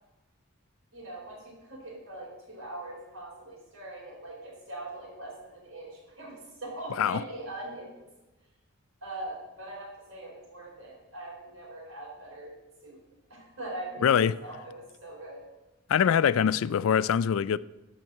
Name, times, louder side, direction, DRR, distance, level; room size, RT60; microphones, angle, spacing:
voice 1, 0.9-8.0 9.0-12.5 12.8-13.0 13.3-15.4, right 2 dB, 65° right, 4.3 m, -41 dB
voice 2, 14.0-14.3 15.9-17.6, left 8 dB, 70° left, 0.3 m, -23 dB
12.0 x 4.7 x 7.4 m
head